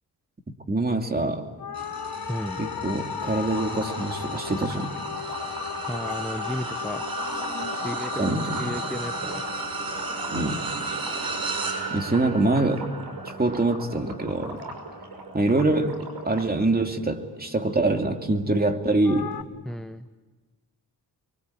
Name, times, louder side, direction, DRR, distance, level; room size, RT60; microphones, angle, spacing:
voice 1, 0.7-1.5 2.6-4.9 8.2-8.7 10.3-10.7 11.9-12.9 13.2-14.6 15.3-19.4, right 2 dB, 25° right, 4 dB, 2.6 m, -25 dB
sound 1, 1.6-12.1 19.0-19.4, left 9 dB, 65° left, 1.3 m, -36 dB
sound 2, 1.7-17.3 17.8-18.0 19.3-19.4, right 4 dB, 60° right, 6.2 m, -35 dB
voice 2, 2.3-2.6 5.9-7.0 7.8-8.3 8.6-9.4 19.7-20.1, equal, ahead, 9 dB, 0.8 m, -33 dB
sound 3, 3.5-9.5 9.9-16.5, right 3 dB, 80° right, 5.6 m, -40 dB
25.5 x 23.5 x 8.7 m, 1.3 s
cardioid pair, 80°, 39 cm